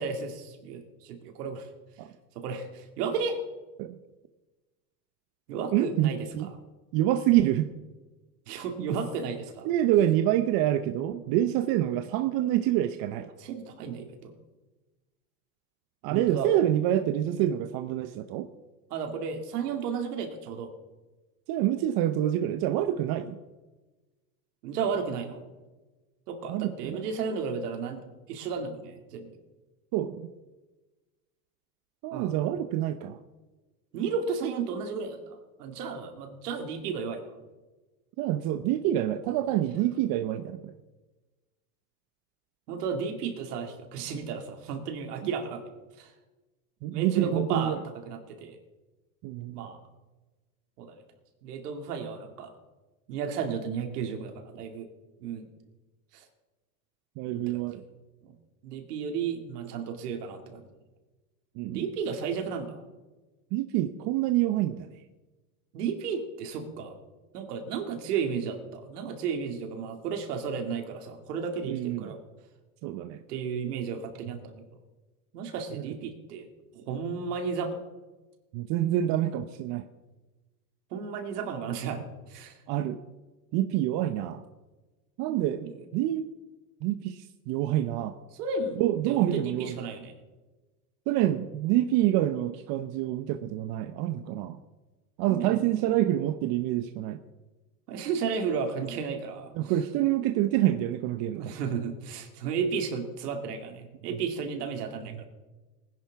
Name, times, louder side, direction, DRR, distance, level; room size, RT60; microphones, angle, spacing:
voice 1, 0.0-1.7 2.3-3.4 5.5-6.5 8.5-9.7 13.4-14.3 16.1-16.5 18.9-20.7 24.6-25.4 26.3-28.0 28.3-29.3 32.1-32.3 33.9-37.2 42.7-45.7 46.0-46.1 46.9-47.8 48.1-48.6 49.5-49.8 50.8-51.0 51.4-52.5 53.1-54.9 55.2-55.5 56.1-56.2 57.3-57.7 58.2-58.3 58.6-60.6 61.7-62.8 65.7-67.0 67.3-72.2 73.3-74.6 75.3-76.5 76.7-77.8 80.9-82.0 82.3-82.5 85.3-85.7 88.3-90.1 95.2-95.9 97.9-99.7 101.3-105.2, right 6 dB, 80° right, 5 dB, 2.5 m, -33 dB
voice 2, 5.7-6.5 6.9-7.7 9.6-13.3 16.0-18.5 21.5-23.4 26.5-27.0 29.9-30.3 32.0-33.2 38.2-40.7 45.2-45.3 46.8-47.8 49.2-49.7 57.2-57.8 61.6-61.9 63.5-64.9 71.6-72.2 72.8-73.2 78.5-79.8 82.7-83.0 83.5-84.4 85.2-86.3 86.8-88.1 88.8-89.7 91.1-94.6 95.2-97.2 99.6-101.6 104.1-104.2, right 12 dB, 50° right, 9 dB, 0.9 m, -27 dB
19.5 x 10.5 x 3.6 m, 1.2 s
supercardioid pair, 110°, 46 cm